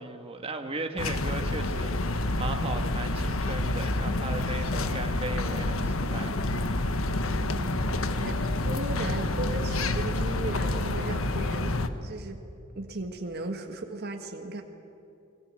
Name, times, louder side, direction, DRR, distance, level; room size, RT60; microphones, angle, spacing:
voice 1, 0.0-6.9, right 2 dB, 30° right, 5 dB, 1.6 m, -37 dB
sound 1, 1.0-11.9, left 2 dB, 85° left, 1.4 m, -28 dB
voice 2, 7.4-12.4 12.7-14.6, right 2 dB, 50° right, 4 dB, 1.7 m, -37 dB
29.5 x 21.5 x 7.7 m, 2.8 s
head